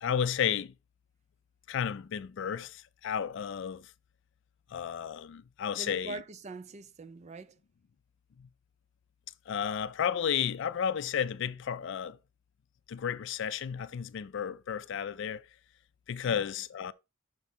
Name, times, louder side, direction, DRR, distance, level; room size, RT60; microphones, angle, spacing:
voice 1, 0.0-0.7 1.7-3.9 4.7-6.2 8.4-8.5 9.5-12.2 12.9-15.5 16.1-16.9, left 8 dB, 65° left, 0.4 m, -32 dB
voice 2, 5.7-7.6 16.2-16.4, right 2 dB, 35° right, 0.4 m, -43 dB
5.9 x 4.6 x 4.2 m
head